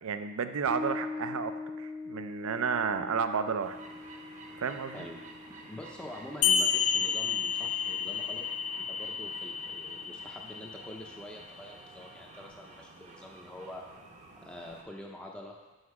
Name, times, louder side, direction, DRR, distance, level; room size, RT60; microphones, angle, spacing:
voice 1, 0.0-3.8 4.6-5.1, right 6 dB, 70° right, 10 dB, 0.5 m, -32 dB
Bass guitar, 0.7-7.8, left 3 dB, 85° right, 1.8 m, -42 dB
sound 1, 3.6-14.8, right 3 dB, 35° right, 0.7 m, -51 dB
voice 2, 5.7-8.5 8.8-13.8 14.4-15.6, left 1 dB, 5° left, -1 dB, 0.6 m, -45 dB
sound 2, 6.4-11.4, left 7 dB, 80° left, 0.4 m, -31 dB
6.4 x 5.9 x 4.8 m, 1.2 s
head